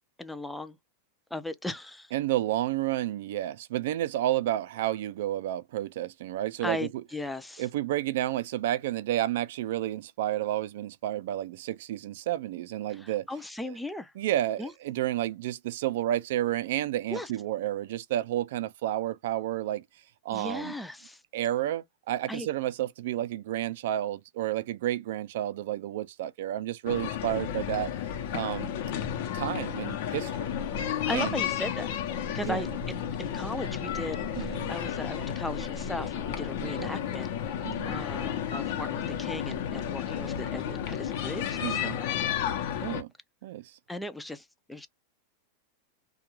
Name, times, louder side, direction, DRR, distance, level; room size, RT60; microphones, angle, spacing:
voice 1, 0.2-0.8 1.3-2.1 6.6-7.6 12.9-14.1 14.6-14.7 17.1-17.3 20.3-21.2 22.3-22.5 31.0-31.9 32.3-37.3 37.9-42.5 43.9-44.9, left 1 dB, 5° left, 0.4 m, -37 dB
voice 2, 2.1-6.9 7.6-13.3 13.7-13.8 14.2-19.8 20.2-20.7 21.3-27.9 28.3-28.7 29.3-30.6 31.1-31.4 32.4-32.6 34.3-34.7 36.6-36.9 37.6-38.0 41.6-42.0 42.8-43.1 43.4-43.8, right 13 dB, 70° right, 0.4 m, -31 dB
sound 1, 26.9-43.0, left 9 dB, 65° left, 0.7 m, -32 dB
2.3 x 2.3 x 3.0 m
supercardioid pair, 125°, 0 cm